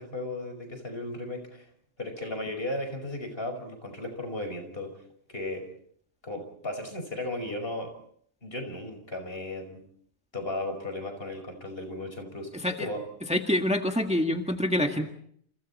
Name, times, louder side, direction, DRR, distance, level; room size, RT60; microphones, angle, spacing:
voice 1, 0.0-1.7 2.0-5.0 5.3-5.6 6.2-7.9 8.4-9.8 10.3-12.5 12.8-13.0, left 1 dB, 60° left, 6 dB, 5.7 m, -35 dB
voice 2, 13.3-15.1, left 1 dB, 5° right, 4 dB, 1.8 m, -26 dB
29.5 x 29.0 x 4.3 m, 0.65 s
omnidirectional pair, 1.1 m